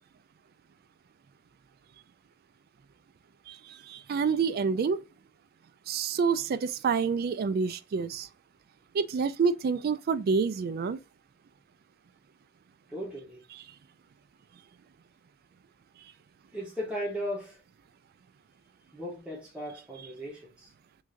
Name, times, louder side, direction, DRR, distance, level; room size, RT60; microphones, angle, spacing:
voice 1, 3.5-5.0 5.9-8.3 8.9-11.0 13.5-13.6, right 5 dB, 45° right, 0.3 m, -28 dB
voice 2, 12.9-13.4 16.5-17.6 18.9-20.7, equal, 5° right, 1.0 m, -37 dB
3.6 x 3.2 x 2.5 m
head